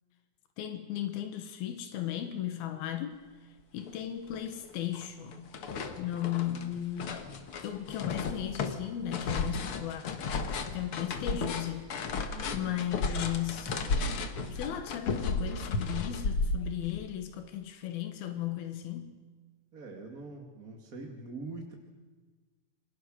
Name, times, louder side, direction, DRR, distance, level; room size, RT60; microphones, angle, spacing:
voice 1, 0.6-3.2 3.7-5.6 6.0-7.2 7.6-10.2 10.7-11.9 12.5-13.8 14.5-19.2, left 11 dB, 90° left, 8 dB, 3.3 m, -36 dB
sound 1, 3.9-4.0 4.3-5.1 5.3-17.0, left 3 dB, 50° left, 1.8 m, -34 dB
voice 2, 12.3-12.8 19.7-21.7, right 3 dB, 30° right, 1 dB, 2.1 m, -43 dB
28.5 x 24.5 x 6.4 m, 1.4 s
omnidirectional pair, 4.2 m